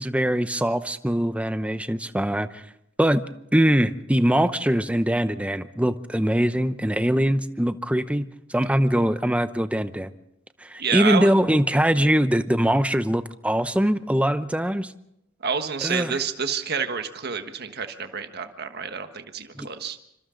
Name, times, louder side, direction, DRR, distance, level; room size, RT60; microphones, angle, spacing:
voice 1, 0.0-2.6 3.0-3.2 3.5-10.1 10.6-14.9 15.8-16.2 19.6-19.7, equal, 5° right, 11 dB, 0.8 m, -22 dB
voice 2, 10.8-11.3 15.4-20.0, right 6 dB, 55° right, 7 dB, 1.4 m, -28 dB
28.0 x 25.5 x 3.9 m, 0.80 s
head